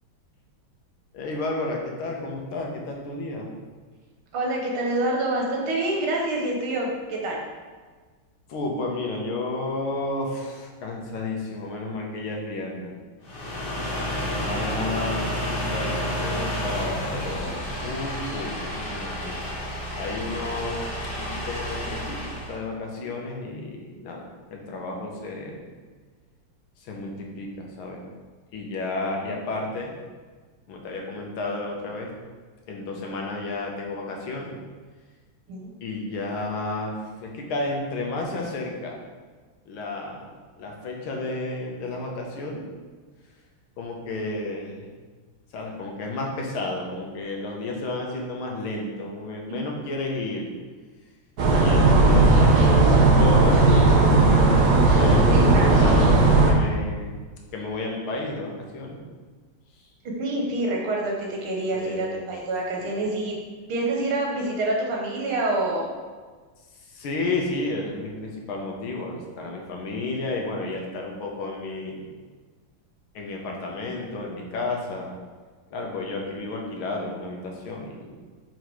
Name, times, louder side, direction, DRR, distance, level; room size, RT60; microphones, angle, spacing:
voice 1, 1.1-3.5 8.5-12.9 14.1-19.5 19.9-25.6 26.8-28.0 28.5-30.0 30.7-32.1 32.7-34.6 35.8-39.0 39.7-40.3 40.6-42.7 43.8-44.9 45.5-50.4 51.5-54.5 55.0-56.2 56.4-57.2 57.5-59.0 61.7-62.2 62.8-63.0 66.9-72.1 73.2-75.1 75.7-78.3, left 2 dB, 85° left, 0 dB, 1.8 m, -32 dB
voice 2, 4.3-7.4 35.5-35.7 49.5-49.6 55.2-56.2 60.0-63.4 63.7-65.9, right 2 dB, 85° right, -1 dB, 2.1 m, -27 dB
sound 1, 13.2-22.6, equal, 40° left, 2.5 m, -30 dB
sound 2, 51.4-56.5, right 2 dB, 55° right, 1.3 m, -16 dB
5.2 x 4.7 x 4.7 m, 1.4 s
omnidirectional pair, 2.3 m